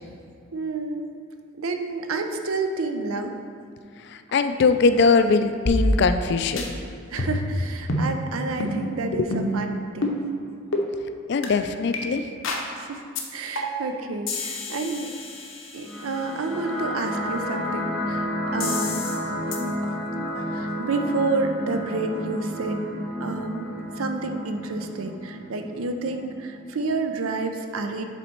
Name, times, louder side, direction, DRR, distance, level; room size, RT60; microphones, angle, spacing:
voice 1, 0.5-1.1 1.6-3.4 7.1-10.2 12.8-13.0 13.3-15.1 15.7-18.3 18.5-19.0 20.4-22.8 23.2-23.7 24.0-28.0, right 3 dB, 90° right, 6 dB, 0.6 m, -29 dB
voice 2, 4.0-6.7 11.3-12.2, left 4 dB, 55° left, 9 dB, 0.3 m, -21 dB
sound 1, 5.7-6.3 6.6-6.7 7.2-7.5 7.9-8.1 8.6-8.8 9.3-9.6 10.0-10.2 10.7-10.9 11.4-11.5 11.9-12.0 12.4-12.7 13.2-13.3 13.6-13.9 14.3-16.1 18.6-19.2 19.5-19.6, left 1 dB, 75° left, 0.8 m, -27 dB
sound 2, 15.8-26.8, equal, 5° right, 0.9 m, -31 dB
7.0 x 4.1 x 4.4 m, 2.4 s
head